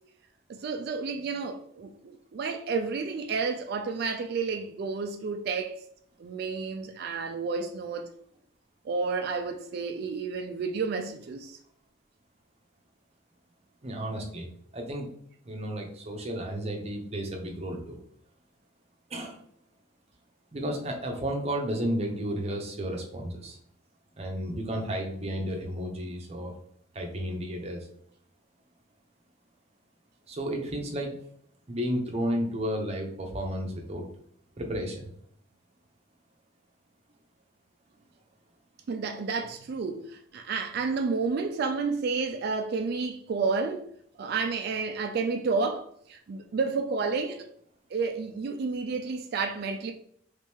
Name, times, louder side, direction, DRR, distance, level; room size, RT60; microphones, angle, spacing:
voice 1, 0.5-5.8 6.2-8.1 8.8-11.6 38.9-43.9 44.2-47.5 47.9-49.9, right 4 dB, 50° right, 0.3 m, -31 dB
voice 2, 13.8-14.5 14.7-15.1 15.4-18.0 19.1-19.4 20.5-23.6 24.2-26.5 26.9-27.9 30.3-31.2 31.7-34.1 34.6-35.1, equal, 30° right, 0.7 m, -32 dB
3.2 x 2.9 x 3.5 m
head